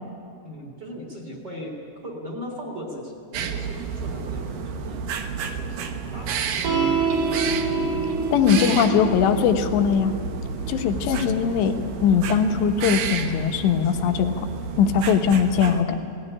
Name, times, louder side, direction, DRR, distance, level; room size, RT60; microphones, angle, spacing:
voice 1, 0.4-5.1 5.4-6.9 8.6-9.1, equal, 25° right, 0 dB, 3.5 m, -38 dB
sound 1, 3.3-15.8, right 6 dB, 70° right, 2.2 m, -31 dB
sound 2, 6.6-13.3, right 3 dB, 50° right, 3.2 m, -28 dB
voice 2, 8.3-10.1 10.7-14.3 14.8-16.0, left 7 dB, 75° left, 6 dB, 3.2 m, -20 dB
19.0 x 16.5 x 10.0 m, 2.6 s
omnidirectional pair, 5.2 m